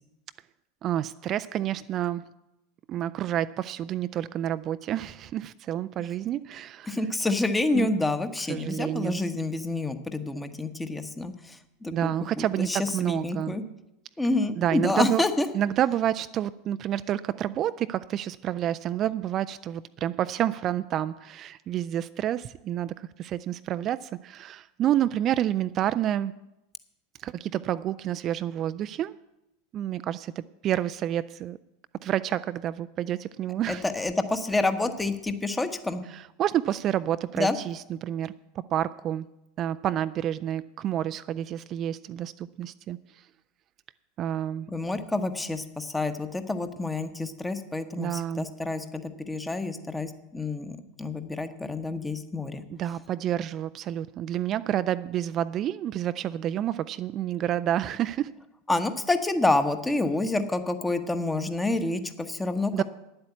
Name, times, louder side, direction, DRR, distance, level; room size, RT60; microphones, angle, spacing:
voice 1, 0.8-2.2 2.9-7.0 7.7-7.9 8.5-9.2 11.9-13.6 14.6-15.2 15.5-26.3 27.2-29.2 29.7-31.6 32.0-33.8 36.1-38.3 38.7-39.3 39.6-43.2 44.2-44.7 48.0-48.4 52.7-58.3 62.7-62.8, right 11 dB, 40° right, 13 dB, 0.3 m, -29 dB
voice 2, 6.9-13.6 14.2-15.5 33.7-36.0 37.4-37.5 44.7-52.6 58.7-62.8, left 2 dB, 10° left, 9 dB, 1.1 m, -28 dB
9.7 x 8.0 x 8.3 m, 0.91 s
figure-of-eight pair, 80°, 0 cm